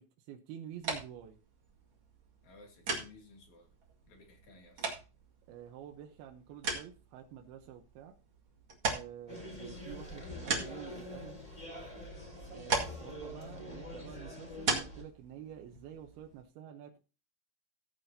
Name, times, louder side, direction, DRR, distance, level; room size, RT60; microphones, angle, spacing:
voice 1, 0.0-1.4 5.5-8.1 8.8-11.4 12.5-17.0, right 10 dB, 75° right, 4 dB, 2.3 m, -49 dB
sound 1, 0.7-16.4, right 4 dB, 50° right, 1.6 m, -40 dB
voice 2, 2.4-3.7 4.1-4.9, left 3 dB, 45° left, 2 dB, 3.3 m, -57 dB
sound 2, 9.3-15.0, left 1 dB, 10° left, 2.8 m, -45 dB
16.5 x 9.1 x 2.8 m, 0.32 s
omnidirectional pair, 5.6 m